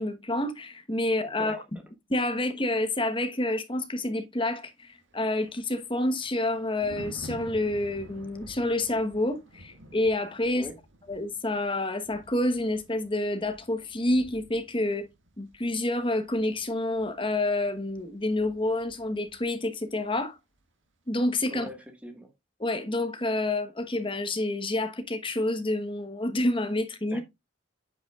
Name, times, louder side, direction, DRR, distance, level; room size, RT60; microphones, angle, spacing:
voice 1, 0.0-1.8 2.1-10.7 11.1-15.1 15.4-20.3 21.1-21.7 22.6-27.2, left 1 dB, 25° left, 1.1 m, -28 dB
Thunder, 5.0-19.6 19.9-20.2, right 1 dB, 60° right, 1.9 m, -50 dB
voice 2, 21.5-22.3 27.1-27.2, equal, 5° right, 1.7 m, -42 dB
8.5 x 8.0 x 2.4 m
head